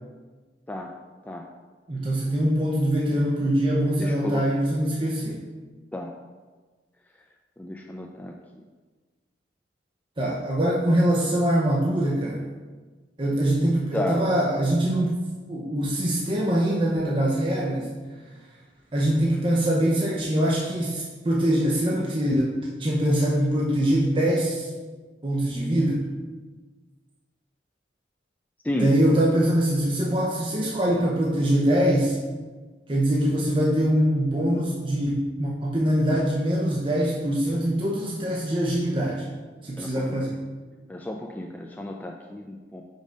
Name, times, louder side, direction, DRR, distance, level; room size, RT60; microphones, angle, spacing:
voice 1, 1.9-5.5 10.2-12.4 13.2-15.2 15.5-17.9 18.9-24.7 25.2-26.1 28.8-32.2 32.9-39.2 39.6-40.4, right 1 dB, 25° right, -3 dB, 0.7 m, -23 dB
voice 2, 4.0-4.5 5.9-6.1 7.6-8.3 13.9-14.2 28.6-28.9 39.8-40.2 40.9-42.8, left 1 dB, 10° left, 1 dB, 0.3 m, -32 dB
5.3 x 5.3 x 5.1 m, 1.4 s
head